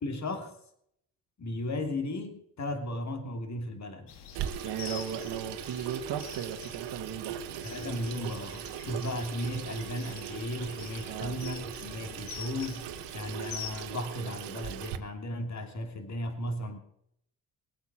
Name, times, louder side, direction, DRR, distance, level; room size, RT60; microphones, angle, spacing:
voice 1, 0.0-0.5 1.4-4.1 7.6-12.9 13.1-16.8, left 1 dB, 40° left, 6 dB, 2.9 m, -35 dB
sound 1, 4.1-13.8, left 7 dB, 80° left, 2.0 m, -46 dB
Water tap faucet / Sink (filling or washing), 4.3-15.0, right 10 dB, 90° right, 1.2 m, -40 dB
voice 2, 4.6-7.7 11.1-11.4, right 9 dB, 65° right, 2 dB, 1.4 m, -36 dB
21.0 x 8.4 x 6.1 m, 0.73 s
cardioid pair, 75°, 41 cm